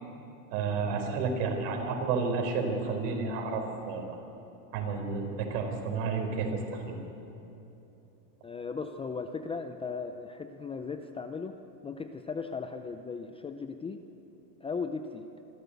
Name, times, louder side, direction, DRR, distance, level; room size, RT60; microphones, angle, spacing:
voice 1, 0.5-4.2 4.7-7.0, right 4 dB, 65° right, 3 dB, 4.5 m, -31 dB
voice 2, 8.4-11.6 11.8-14.0 14.6-15.3, left 5 dB, 10° left, 7 dB, 0.5 m, -37 dB
25.0 x 13.5 x 8.2 m, 2.9 s
supercardioid pair, 130°, 50 cm